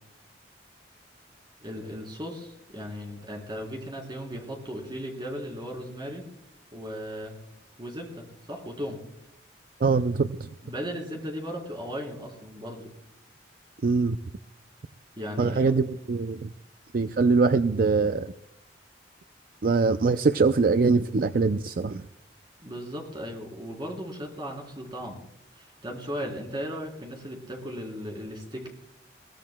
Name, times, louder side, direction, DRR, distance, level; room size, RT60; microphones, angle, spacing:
voice 1, 1.6-6.2 6.7-7.3 7.8-9.0 10.6-12.9 15.2-15.7 22.6-25.2 25.5-28.7, equal, 25° right, 0 dB, 3.6 m, -36 dB
voice 2, 9.8-10.3 13.8-14.2 15.4-16.5 16.9-18.3 19.6-22.0, right 4 dB, 50° right, 10 dB, 0.4 m, -23 dB
22.0 x 17.0 x 2.2 m, 0.79 s
head